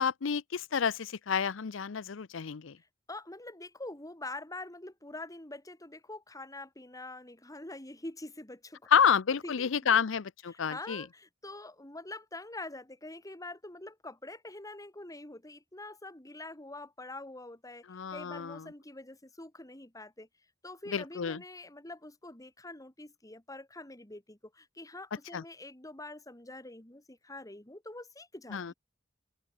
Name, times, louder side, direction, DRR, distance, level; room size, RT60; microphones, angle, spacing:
voice 1, 0.0-2.8 8.9-11.0 17.9-18.6 20.9-21.4 25.3-25.4 28.5-28.7, left 7 dB, 75° left, 0.6 m, -29 dB
voice 2, 3.1-8.8 9.4-10.0 10.5-20.3 20.6-28.7, left 2 dB, 20° left, 2.7 m, -45 dB
open air
head